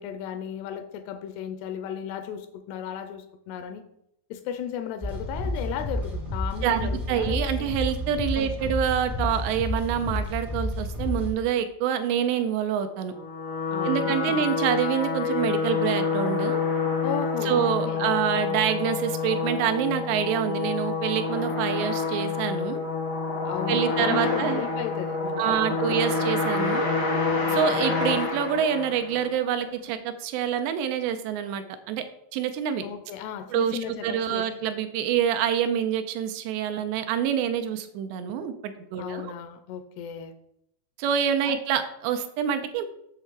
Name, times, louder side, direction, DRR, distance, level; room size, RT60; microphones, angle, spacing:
voice 1, 0.0-3.8 4.3-7.7 8.4-8.7 13.7-14.7 17.0-18.1 23.4-26.1 32.8-34.5 39.0-40.3 41.5-41.6, left 9 dB, 80° left, 9 dB, 2.5 m, -35 dB
sound 1, 5.0-11.3, left 1 dB, 35° right, 0.5 m, -30 dB
voice 2, 6.6-13.1 13.8-16.6 17.5-22.8 23.7-24.6 25.4-26.9 27.5-32.0 32.3-32.8 33.5-39.3 41.0-42.9, right 9 dB, 80° right, 8 dB, 2.7 m, -26 dB
sound 2, 13.1-29.4, left 4 dB, 65° left, 1.0 m, -27 dB
8.1 x 6.6 x 4.6 m, 0.79 s
omnidirectional pair, 5.1 m